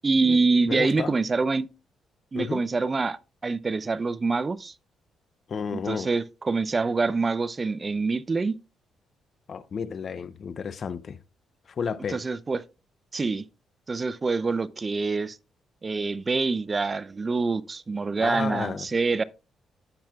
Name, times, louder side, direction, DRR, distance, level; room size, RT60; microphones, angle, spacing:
voice 1, 0.0-1.7 2.3-4.7 5.7-8.6 12.1-12.6 13.1-13.4 13.9-15.4 15.8-19.2, right 4 dB, 30° right, 0.5 m, -25 dB
voice 2, 0.7-1.1 2.3-2.6 5.5-6.1 9.5-11.2 11.7-12.2 18.2-18.9, left 6 dB, 50° left, 0.5 m, -32 dB
15.0 x 5.8 x 2.4 m
cardioid pair, 75°, 0 cm